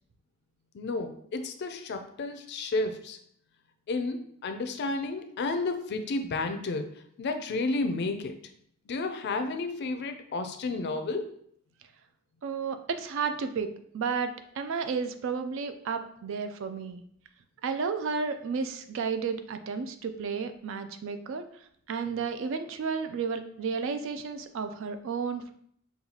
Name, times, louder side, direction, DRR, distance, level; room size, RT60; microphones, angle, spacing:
voice 1, 0.7-3.2 3.9-6.9 7.2-8.3 8.9-11.3, left 3 dB, 55° left, 7 dB, 0.4 m, -31 dB
voice 2, 12.4-14.3 14.6-17.0 17.6-21.5 21.9-25.5, right 5 dB, 65° right, 8 dB, 0.4 m, -32 dB
5.5 x 2.3 x 2.8 m, 0.66 s
head